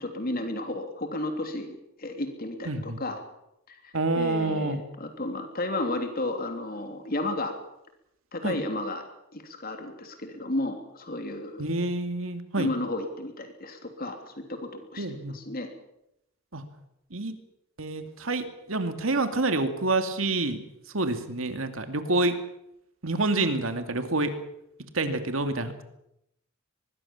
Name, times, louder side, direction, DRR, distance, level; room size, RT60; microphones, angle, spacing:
voice 1, 0.0-3.2 3.7-7.5 8.3-9.0 9.3-11.6 12.6-15.0 15.3-15.7, left 2 dB, 45° left, 5 dB, 3.3 m, -33 dB
voice 2, 2.7-3.0 3.9-4.8 8.4-8.6 11.6-12.7 15.0-15.4 16.5-16.6 17.1-17.3 17.8-22.4 23.0-24.3 24.9-25.8, right 2 dB, 75° right, 8 dB, 2.5 m, -28 dB
24.0 x 21.5 x 7.3 m, 0.82 s
head